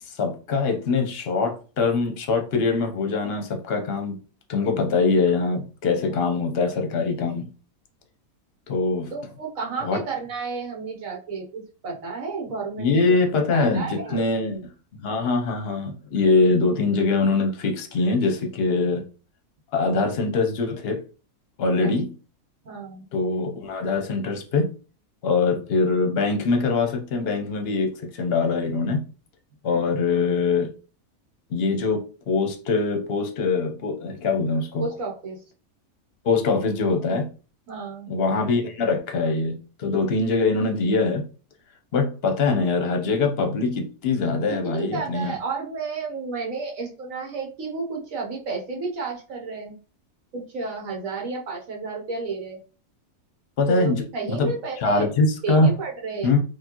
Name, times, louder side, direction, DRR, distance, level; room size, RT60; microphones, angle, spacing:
voice 1, 0.2-4.2 4.5-7.5 8.7-9.1 9.8-10.0 12.8-14.6 15.0-19.0 19.7-21.0 21.6-22.1 23.1-24.8 25.2-29.0 29.6-30.7 31.5-34.9 36.2-37.3 38.1-41.3 41.9-45.3 53.6-54.5 54.8-55.7 56.2-56.4, left 3 dB, 50° left, 0.8 m, -23 dB
voice 2, 9.1-13.0 13.5-14.2 21.8-21.9 22.6-23.0 29.7-29.9 34.8-35.4 37.7-38.1 44.6-49.8 50.3-52.6 53.7-55.1 55.4-56.4, right 4 dB, 65° right, 1.3 m, -31 dB
4.2 x 2.5 x 2.9 m
omnidirectional pair, 1.6 m